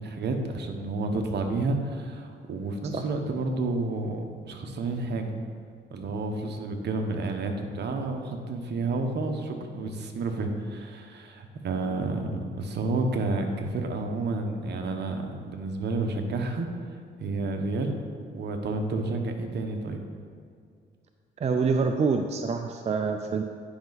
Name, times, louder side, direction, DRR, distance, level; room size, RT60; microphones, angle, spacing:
voice 1, 0.0-5.3 5.9-16.7 17.2-20.0, right 3 dB, 60° right, 4 dB, 1.0 m, -30 dB
voice 2, 21.4-23.4, right 5 dB, 35° right, 5 dB, 0.4 m, -26 dB
10.0 x 5.3 x 4.0 m, 2.2 s
cardioid pair, 90°, 20 cm